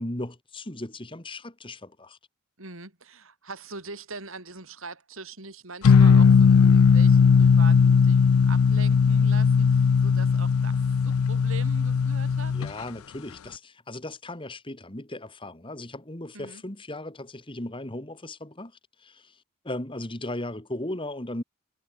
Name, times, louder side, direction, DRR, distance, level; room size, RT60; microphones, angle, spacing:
voice 1, 0.0-2.2 12.5-18.7 19.0-21.4, left 1 dB, 25° left, 2.1 m, -37 dB
voice 2, 2.6-10.8 11.0-12.5 16.3-16.6, right 3 dB, 65° right, 6.1 m, -42 dB
sound 1, 5.8-12.7, left 6 dB, 80° left, 0.4 m, -18 dB
head